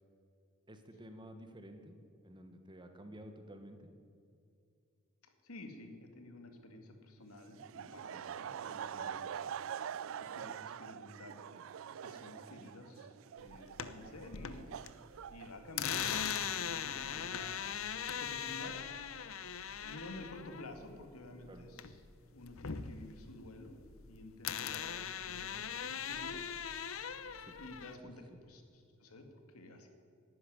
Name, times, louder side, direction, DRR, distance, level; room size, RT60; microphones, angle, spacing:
voice 1, 0.7-1.9 2.2-3.9 8.9-9.2 21.5-21.7 27.4-27.6 28.0-28.4, right 1 dB, 20° right, 7 dB, 1.2 m, -52 dB
voice 2, 5.2-9.4 10.2-11.4 11.8-14.7 15.3-17.7 18.2-18.8 19.0-19.2 19.7-22.0 22.3-23.8 24.1-26.4 27.6-29.9, left 1 dB, 85° left, 5 dB, 2.0 m, -51 dB
Laughter, 7.6-16.1, right 8 dB, 60° right, 0.3 m, -45 dB
sound 1, 13.5-14.9 15.2-22.1 22.4-24.1 24.4-28.0, left 8 dB, 65° left, 0.7 m, -40 dB
11.5 x 9.9 x 9.8 m, 2.5 s
head